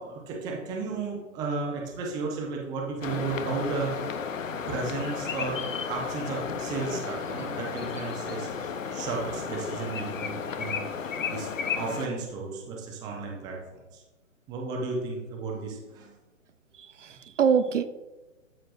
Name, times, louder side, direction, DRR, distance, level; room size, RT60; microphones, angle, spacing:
voice 1, 0.0-4.1 4.5-14.0 14.5-16.1, right 4 dB, 10° right, -1 dB, 0.7 m, -34 dB
sound 1, 3.0-12.1, left 6 dB, 75° left, 0.9 m, -33 dB
voice 2, 16.7-17.9, right 7 dB, 65° right, 12 dB, 0.5 m, -25 dB
13.0 x 4.4 x 2.6 m, 1.1 s
hypercardioid pair, 145°, 39 cm